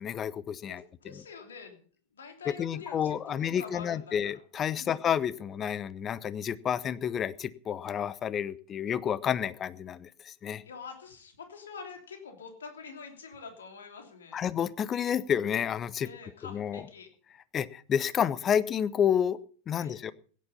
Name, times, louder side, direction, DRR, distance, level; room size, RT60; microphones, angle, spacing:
voice 1, 0.0-0.8 2.6-10.6 14.3-16.1 16.4-16.8 17.5-19.4 19.7-20.1, left 8 dB, 25° left, 19 dB, 0.8 m, -30 dB
voice 2, 0.7-1.8 2.1-4.4 4.7-5.0 10.6-14.4 16.0-17.1 19.8-20.0, left 5 dB, 65° left, 4 dB, 3.2 m, -46 dB
16.5 x 10.5 x 5.6 m, 0.44 s
figure-of-eight pair, 90°, 0 cm